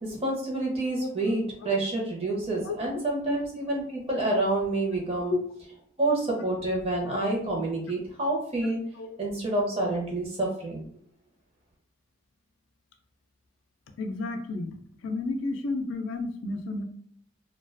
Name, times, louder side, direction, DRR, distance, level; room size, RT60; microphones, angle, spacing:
voice 1, 0.0-5.3 6.0-8.8 9.2-10.8, right 2 dB, 30° right, -2 dB, 0.6 m, -28 dB
voice 2, 14.0-14.8 15.0-16.8, left 2 dB, 75° left, 5 dB, 0.4 m, -31 dB
2.3 x 2.2 x 2.4 m, 0.63 s
head